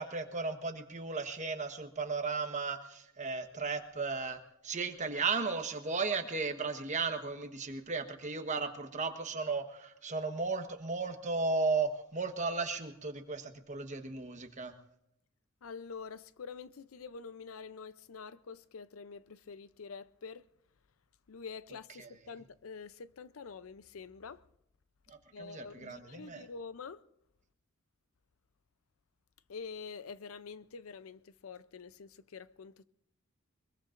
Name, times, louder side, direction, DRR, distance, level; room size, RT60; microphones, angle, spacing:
voice 1, 0.0-14.7 22.0-22.1 25.1-26.4, right 4 dB, 35° right, 1.2 m, -35 dB
voice 2, 15.6-20.5 21.3-24.4 25.3-27.0 29.5-32.9, left 5 dB, 90° left, 0.6 m, -46 dB
23.0 x 21.5 x 2.5 m
head